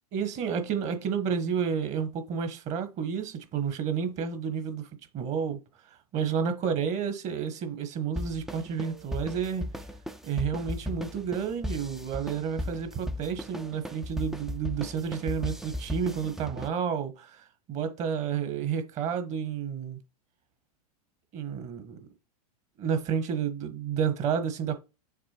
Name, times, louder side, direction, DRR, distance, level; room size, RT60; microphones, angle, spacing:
voice 1, 0.1-4.9 5.1-5.6 6.1-9.7 10.2-20.0 21.3-22.1 22.8-24.8, right 7 dB, 35° right, 1.4 m, -30 dB
sound 1, 8.2-16.7, left 1 dB, ahead, 0.5 m, -37 dB
6.7 x 3.2 x 4.4 m
hypercardioid pair, 105°, 20 cm